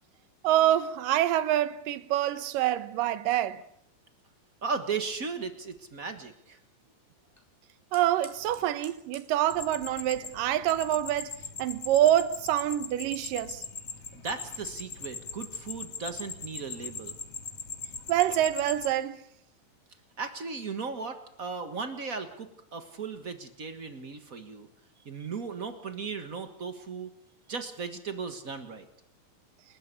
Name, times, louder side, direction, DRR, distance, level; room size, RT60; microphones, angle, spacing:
voice 1, 0.4-3.6 7.9-13.6 18.1-19.2, right 12 dB, 75° right, 2.7 m, -26 dB
voice 2, 4.6-6.6 14.1-17.2 20.2-24.7 25.0-27.1 27.5-28.9, right 5 dB, 55° right, 0.9 m, -36 dB
Fire, 5.0-12.2, equal, 5° left, 4.3 m, -58 dB
sound 1, 9.5-18.9, left 6 dB, 45° left, 2.6 m, -40 dB
29.0 x 13.5 x 8.4 m
omnidirectional pair, 4.0 m